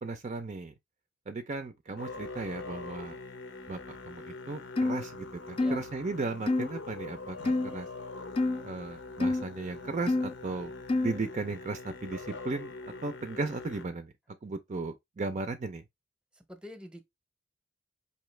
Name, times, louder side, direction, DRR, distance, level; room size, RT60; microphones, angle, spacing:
voice 1, 0.0-0.7 1.3-3.2 3.7-7.9 8.6-10.7 11.0-12.7 13.0-14.1 14.4-15.8, right 3 dB, 40° right, 0.5 m, -36 dB
Musical instrument, 2.0-13.9, left 3 dB, 90° left, 0.9 m, -43 dB
sound 1, 4.8-5.0 5.6-5.8 6.5-6.7 7.4-7.7 8.4-8.6 9.2-9.4 10.1-10.3 10.9-11.2, left 2 dB, 30° left, 0.4 m, -27 dB
voice 2, 16.5-17.0, left 1 dB, 5° right, 0.8 m, -45 dB
4.7 x 2.8 x 3.2 m
head